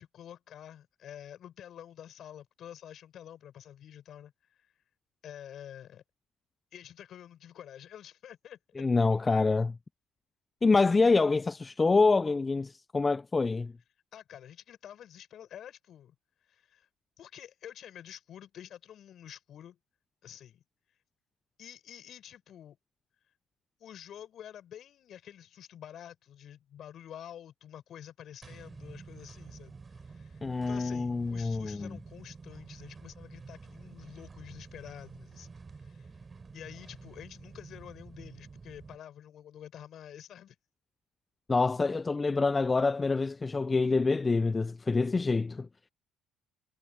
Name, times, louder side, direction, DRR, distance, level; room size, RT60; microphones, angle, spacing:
voice 1, 0.0-4.3 5.2-6.0 6.7-8.6 14.1-16.1 16.5-16.9 17.2-19.8 20.2-20.6 21.6-22.8 23.8-35.5 35.7-36.1 36.5-40.5, left 10 dB, 55° left, 6.8 m, -48 dB
voice 2, 8.8-9.8 10.6-13.7 30.4-32.0 41.5-45.7, left 3 dB, 25° left, 0.4 m, -26 dB
sound 1, 28.4-39.0, right 4 dB, 30° right, 5.0 m, -49 dB
supercardioid pair, 80°, 0 cm